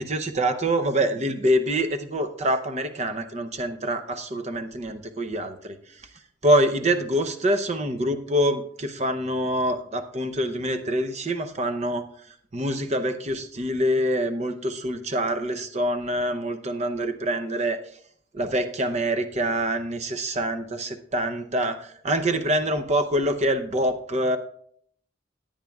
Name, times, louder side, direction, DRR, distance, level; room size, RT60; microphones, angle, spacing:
voice 1, 0.0-5.8 6.4-12.0 12.5-17.8 18.3-24.4, right 1 dB, 35° right, 9 dB, 0.7 m, -25 dB
17.5 x 8.9 x 2.3 m, 0.65 s
head